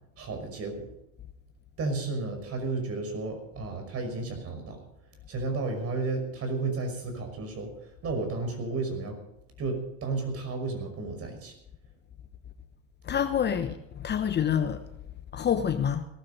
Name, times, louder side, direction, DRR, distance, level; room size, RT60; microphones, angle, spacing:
voice 1, 0.2-0.9 1.8-4.8 5.3-7.7 8.0-9.2 9.6-11.5, right 3 dB, 35° right, 6 dB, 5.8 m, -32 dB
voice 2, 13.1-14.8 15.3-16.0, left 8 dB, 25° left, 9 dB, 1.1 m, -27 dB
18.0 x 12.5 x 5.4 m, 0.85 s
hypercardioid pair, 100°, 39 cm